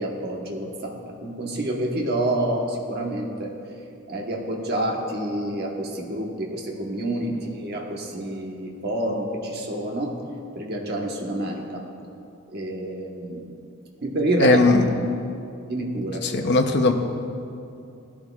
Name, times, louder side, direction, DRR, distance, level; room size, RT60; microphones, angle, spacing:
voice 1, 0.0-3.5 4.1-10.1 10.5-11.8 12.5-13.4 14.0-14.6 15.7-16.2, right 1 dB, 45° right, 0 dB, 1.2 m, -28 dB
voice 2, 14.4-15.1 16.2-16.9, left 3 dB, 50° left, 5 dB, 0.8 m, -19 dB
17.0 x 11.0 x 2.4 m, 2.6 s
head